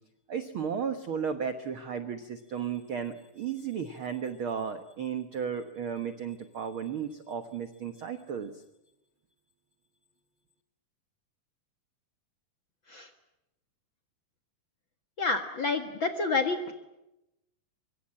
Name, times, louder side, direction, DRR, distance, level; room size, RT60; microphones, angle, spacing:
voice 1, 0.3-8.6, right 7 dB, 80° right, 9 dB, 1.1 m, -34 dB
voice 2, 15.2-16.7, left 3 dB, 50° left, 6 dB, 1.5 m, -29 dB
24.5 x 23.0 x 8.7 m, 0.90 s
omnidirectional pair, 4.3 m